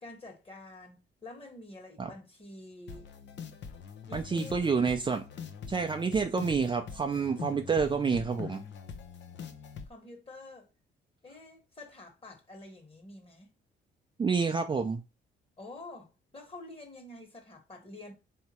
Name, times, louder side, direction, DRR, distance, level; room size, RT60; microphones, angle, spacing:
voice 1, 0.0-3.1 4.1-4.7 9.9-10.7 11.2-13.5 15.6-18.1, left 2 dB, 30° left, 1.6 m, -48 dB
sound 1, 2.9-9.9, left 6 dB, 65° left, 0.8 m, -43 dB
voice 2, 4.1-5.2 5.7-8.6 14.2-15.0, right 5 dB, 25° right, 0.4 m, -28 dB
3.5 x 2.8 x 4.3 m
cardioid pair, 90°, 20 cm